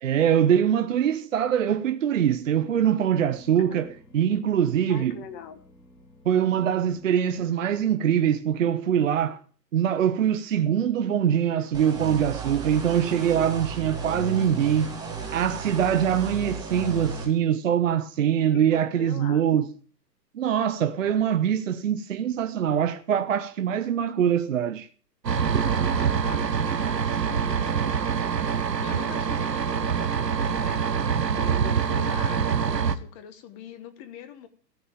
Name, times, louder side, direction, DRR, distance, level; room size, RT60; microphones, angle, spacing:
voice 1, 0.0-3.9 4.1-5.2 6.3-9.4 9.7-14.9 15.3-19.7 20.3-24.9, right 9 dB, 50° right, 0.7 m, -23 dB
sound 1, 2.5-7.5, equal, 75° left, 7.7 m, -52 dB
voice 2, 4.9-5.6 14.0-14.8 18.5-19.5 25.7-28.3 28.8-30.9 31.4-34.5, left 8 dB, 20° left, 1.2 m, -43 dB
sound 2, 11.7-17.3, right 5 dB, 10° right, 2.3 m, -34 dB
sound 3, 25.2-32.9, right 7 dB, 75° right, 1.1 m, -25 dB
14.5 x 5.4 x 9.0 m
figure-of-eight pair, 125°, 50 cm